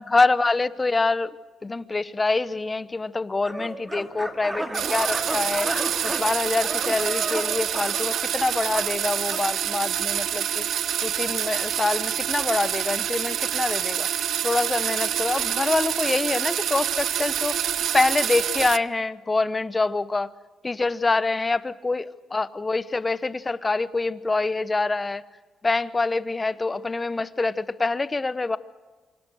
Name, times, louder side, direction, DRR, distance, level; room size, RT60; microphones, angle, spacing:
voice 1, 0.0-1.3 1.6-5.7 6.0-10.6 11.0-14.1 14.4-17.5 17.9-20.3 20.6-25.2 25.6-28.6, left 3 dB, 25° left, 15 dB, 1.0 m, -25 dB
sound 1, 3.4-9.5, right 1 dB, 15° right, 2.7 m, -33 dB
sound 2, 4.7-18.8, right 10 dB, 70° right, 0.7 m, -27 dB
28.0 x 24.5 x 6.4 m, 1.3 s
cardioid pair, 90°, 0 cm